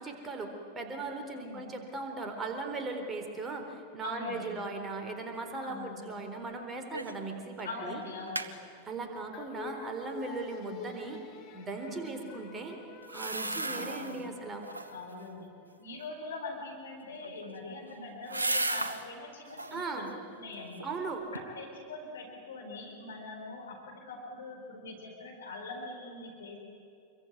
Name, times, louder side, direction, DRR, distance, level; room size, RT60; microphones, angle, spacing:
voice 1, 0.0-8.0 8.8-11.2 11.5-12.8 13.1-14.6 19.7-20.1 20.8-21.2, right 3 dB, 20° right, 4 dB, 4.0 m, -38 dB
voice 2, 1.3-1.6 4.0-4.6 5.6-6.0 7.6-8.6 11.9-12.2 13.4-14.3 14.9-15.5 15.8-20.9 21.3-23.8 24.1-26.6, left 3 dB, 65° left, 1 dB, 4.3 m, -43 dB
sound 1, 6.9-7.3 7.6-7.7 8.0-8.5 13.0-14.2 14.6-15.1 17.1-19.1 19.5-19.9 20.4-21.0 21.4-21.5, right 2 dB, 80° right, 1.5 m, -35 dB
sound 2, 9.3-15.9, left 5 dB, 35° left, 3.2 m, -48 dB
27.0 x 23.0 x 9.5 m, 2.6 s
figure-of-eight pair, 90°, 0 cm